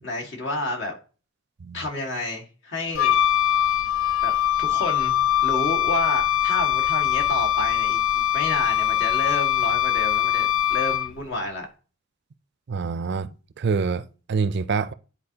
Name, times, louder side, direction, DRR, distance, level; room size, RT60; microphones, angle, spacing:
voice 1, 0.0-0.9 1.7-3.2 4.2-4.3 4.6-5.1 5.4-11.7, left 2 dB, 65° left, 1.8 m, -30 dB
Wind instrument woodwind instrument, 2.9-11.3, left 11 dB, 85° left, 0.4 m, -22 dB
voice 2, 12.7-13.3 13.6-14.9, right 5 dB, 60° right, 0.4 m, -26 dB
10.5 x 4.2 x 2.8 m
head